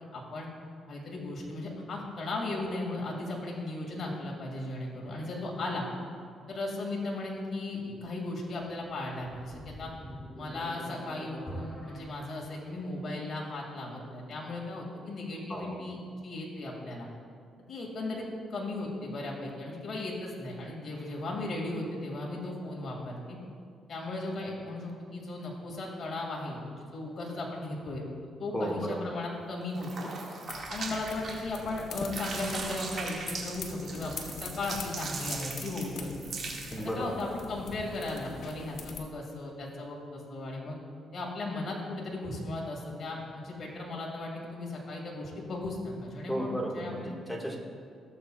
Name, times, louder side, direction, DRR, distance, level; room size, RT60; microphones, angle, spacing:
voice 1, 0.1-0.5 0.9-5.9 6.5-9.9 10.3-16.0 16.2-17.1 17.7-23.4 23.9-28.0 28.4-30.1 30.7-36.3 36.8-40.8 41.1-47.1, left 2 dB, 45° left, -3 dB, 2.1 m, -36 dB
sound 1, 8.8-12.0, equal, 20° left, 2.6 m, -46 dB
voice 2, 28.5-29.0 36.7-37.2 46.3-47.6, equal, 5° left, -2 dB, 1.7 m, -34 dB
sound 2, 29.7-31.7 32.0-36.9, right 4 dB, 55° right, 1.9 m, -39 dB
sound 3, 30.5-39.0, left 4 dB, 65° left, 1.0 m, -44 dB
16.5 x 7.5 x 2.4 m, 2.2 s
cardioid pair, 90°, 0 cm